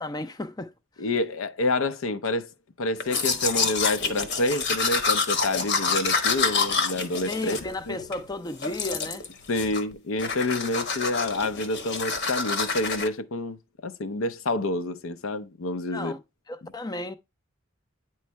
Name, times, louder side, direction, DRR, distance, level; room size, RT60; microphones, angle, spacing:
voice 1, 0.0-0.7 1.0-1.1 7.2-9.2 15.9-16.2 16.5-17.2, left 2 dB, 20° left, 0.4 m, -34 dB
voice 2, 1.0-2.5 2.8-7.6 7.9-8.0 9.5-13.6 13.8-16.1, left 2 dB, 70° left, 0.6 m, -28 dB
Domestic sounds home sounds, 3.0-8.2 8.6-9.3 9.5-9.9 10.2-13.1, left 5 dB, 55° left, 1.1 m, -27 dB
9.4 x 3.2 x 4.4 m
head